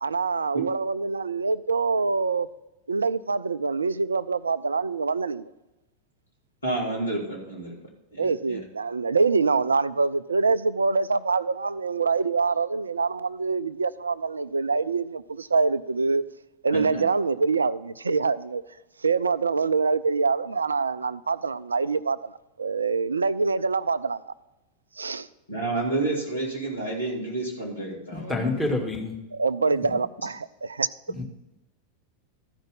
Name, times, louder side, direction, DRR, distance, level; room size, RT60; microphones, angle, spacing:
voice 1, 0.0-2.5 2.9-5.4 8.2-16.2 16.6-18.6 19.0-22.2 22.6-24.2 25.0-25.3 29.3-30.5 30.8-30.9, right 4 dB, 75° right, 0.3 m, -25 dB
voice 2, 6.6-7.8 8.1-8.6 16.7-17.0 25.5-28.8 30.2-30.3, right 2 dB, 75° left, 3.1 m, -30 dB
voice 3, 28.1-29.1 29.8-29.9 31.1-31.2, left 2 dB, 5° left, 1.7 m, -28 dB
13.5 x 5.3 x 5.5 m
figure-of-eight pair, 90°, 0 cm